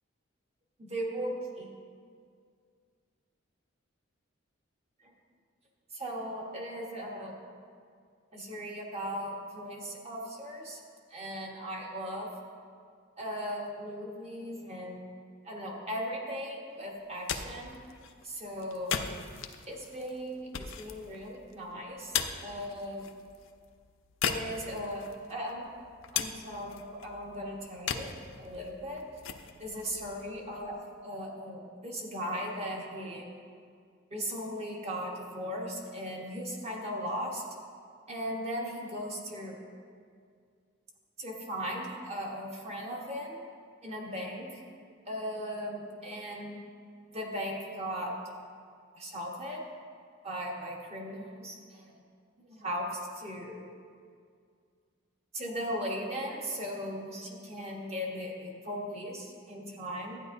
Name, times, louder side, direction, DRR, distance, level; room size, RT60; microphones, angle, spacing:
voice 1, 0.8-1.7 5.9-7.3 8.3-10.8 11.1-12.3 13.2-15.0 15.4-17.8 18.2-19.0 19.7-23.0 24.3-25.7 26.1-28.1 28.4-29.0 29.6-33.3 34.1-37.4 38.1-39.6 41.2-43.4 43.8-44.6 45.1-46.6 47.1-48.1 48.9-49.6 50.2-51.9 52.4-53.6 55.3-60.2, equal, 30° right, -1 dB, 1.3 m, -38 dB
sound 1, 17.0-31.0, left 7 dB, 75° left, 0.5 m, -39 dB
12.5 x 9.3 x 2.7 m, 2.2 s
head